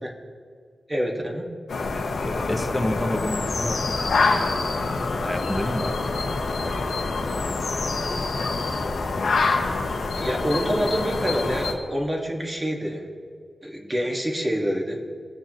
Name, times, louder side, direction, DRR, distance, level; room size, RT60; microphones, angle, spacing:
voice 1, 0.9-1.5 10.2-13.1 13.6-15.0, equal, 25° right, -1 dB, 1.8 m, -26 dB
sound 1, 1.7-11.7, left 3 dB, 85° left, 1.2 m, -26 dB
voice 2, 2.2-4.5 5.2-6.8, left 1 dB, 5° left, 3 dB, 1.1 m, -30 dB
19.5 x 6.8 x 3.1 m, 2.2 s
cardioid pair, 75°, 0 cm